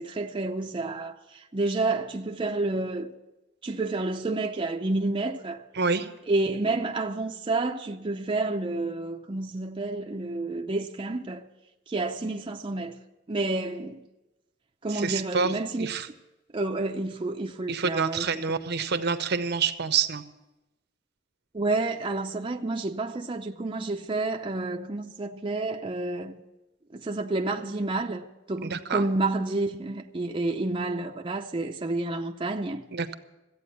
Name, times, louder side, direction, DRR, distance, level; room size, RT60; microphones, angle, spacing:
voice 1, 0.0-3.1 3.6-5.6 6.3-11.4 11.9-13.0 13.3-14.1 14.8-15.9 16.5-18.3 21.5-26.4 26.9-32.8, right 2 dB, 25° right, 0.6 m, -29 dB
voice 2, 5.7-6.1 14.9-15.5 15.8-16.1 17.7-20.2 28.6-29.0 32.9-33.1, right 5 dB, 55° right, 0.8 m, -27 dB
14.5 x 8.6 x 8.3 m
head